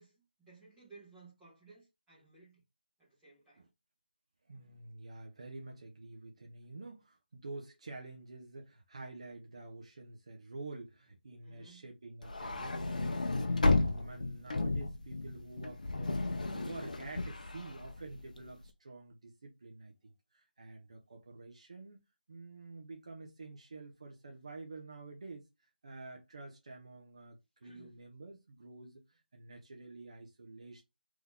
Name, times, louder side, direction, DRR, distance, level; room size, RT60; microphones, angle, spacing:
voice 1, 0.0-2.6 3.0-3.7 11.4-11.9 27.6-27.9, right 4 dB, 5° right, 1.4 m, -58 dB
voice 2, 4.4-13.5 13.8-22.0 22.3-25.5 25.8-30.8, right 3 dB, 35° right, 0.7 m, -49 dB
sound 1, 12.2-18.5, left 2 dB, 50° left, 0.6 m, -33 dB
3.8 x 3.0 x 3.5 m
figure-of-eight pair, 175°, 5 cm